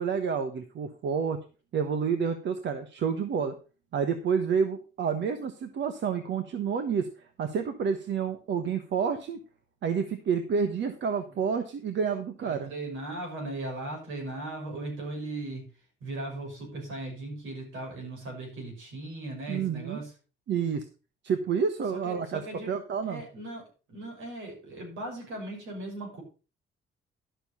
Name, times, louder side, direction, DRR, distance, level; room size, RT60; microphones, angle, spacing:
voice 1, 0.0-1.4 1.7-3.5 3.9-7.1 7.4-9.4 9.8-12.7 19.5-20.0 20.5-20.8 21.2-22.4 22.7-23.2, right 6 dB, 65° right, 8 dB, 1.2 m, -29 dB
voice 2, 12.4-20.1 21.9-22.8 23.0-26.2, right 2 dB, 85° right, 1 dB, 6.2 m, -38 dB
11.5 x 6.9 x 5.5 m, 0.34 s
cardioid pair, 90°, 20 cm